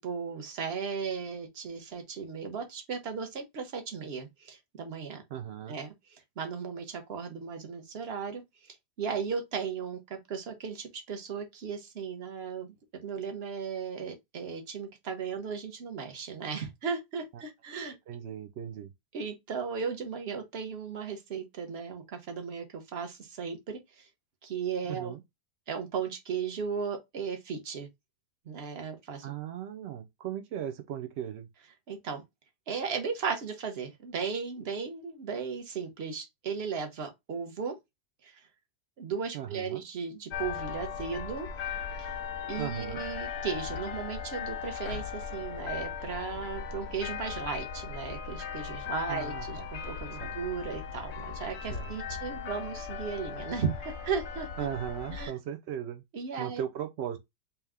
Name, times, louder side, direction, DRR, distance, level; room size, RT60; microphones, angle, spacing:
voice 1, 0.0-5.2 5.7-8.4 8.7-12.7 13.0-17.9 19.1-24.1 24.4-25.1 25.7-27.9 28.5-29.3 31.9-32.2 32.7-37.8 38.2-38.4 39.0-41.5 42.0-42.1 42.5-54.5 55.1-55.3 56.1-56.6, right 6 dB, 50° right, 0.9 m, -36 dB
voice 2, 5.3-5.8 17.3-17.4 18.1-18.9 24.8-25.2 29.2-31.5 39.3-39.8 42.6-43.0 49.1-49.7 50.2-50.4 51.7-51.9 54.6-56.0 56.4-57.2, right 10 dB, 80° right, 0.5 m, -37 dB
sound 1, 40.3-55.3, left 7 dB, 55° left, 0.8 m, -38 dB
3.4 x 2.8 x 3.5 m
omnidirectional pair, 1.8 m